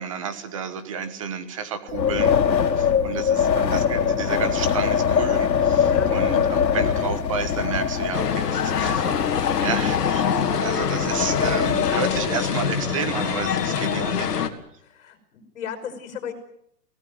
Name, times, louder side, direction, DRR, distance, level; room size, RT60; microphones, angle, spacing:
voice 1, 0.0-10.3 10.6-14.5, right 6 dB, 20° right, 11 dB, 1.3 m, -31 dB
Wind, 1.9-12.3, left 7 dB, 85° left, 2.9 m, -23 dB
sound 1, 8.1-14.5, left 7 dB, 70° left, 2.7 m, -25 dB
voice 2, 14.8-16.3, left 8 dB, 45° left, 7 dB, 5.9 m, -35 dB
23.5 x 17.5 x 9.4 m, 0.71 s
hypercardioid pair, 180°, 49 cm